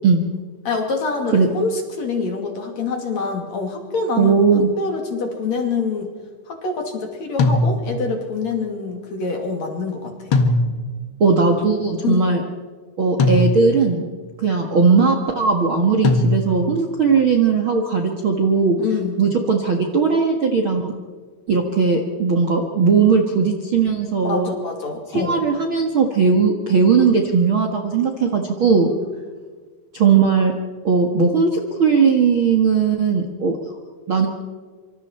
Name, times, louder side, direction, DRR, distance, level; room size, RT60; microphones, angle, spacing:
voice 1, 0.6-4.4 4.8-6.1 6.5-10.4 12.0-12.3 18.8-19.1 24.2-25.5, left 4 dB, 45° left, 3 dB, 3.3 m, -25 dB
voice 2, 4.2-4.7 11.2-12.4 13.0-14.0 14.4-18.8 19.2-20.9 21.5-24.5 25.1-28.9 29.9-30.5 30.8-33.6 34.1-34.3, right 5 dB, 85° right, 2 dB, 1.1 m, -18 dB
sound 1, 7.4-8.2 10.3-11.1 13.2-13.9 16.0-16.8, left 2 dB, 85° left, 1.1 m, -20 dB
26.5 x 25.5 x 4.5 m, 1.5 s
omnidirectional pair, 5.3 m